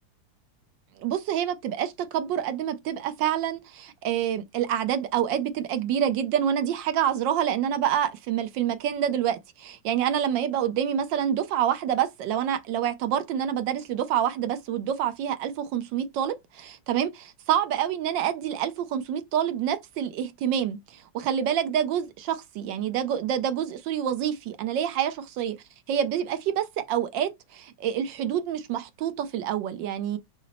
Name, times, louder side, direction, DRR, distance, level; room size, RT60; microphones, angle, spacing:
voice 1, 1.0-25.6 25.9-30.2, right 9 dB, 70° right, 1.2 m, -27 dB
5.7 x 2.0 x 4.0 m
omnidirectional pair, 2.2 m